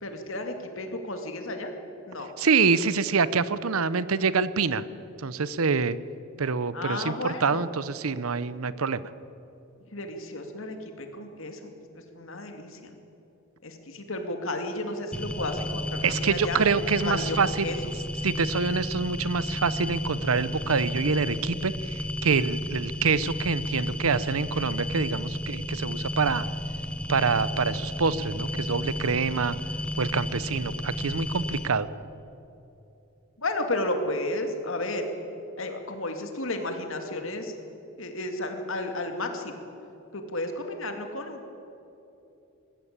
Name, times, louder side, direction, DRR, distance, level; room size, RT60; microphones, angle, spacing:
voice 1, 0.0-1.7 2.1-2.3 6.7-7.7 9.9-11.7 12.1-12.8 13.6-16.6 17.0-17.4 17.6-17.9 33.4-35.0 35.6-37.5 38.0-39.6 40.1-41.5, left 2 dB, 60° left, 5 dB, 2.4 m, -32 dB
voice 2, 2.4-4.8 5.2-6.0 6.4-9.1 16.0-17.7 18.2-26.5 27.1-29.5 30.0-31.9, right 5 dB, 75° right, 16 dB, 0.7 m, -26 dB
sound 1, 15.1-31.7, left 1 dB, 5° left, 0.8 m, -32 dB
21.0 x 15.0 x 8.8 m, 2.9 s
head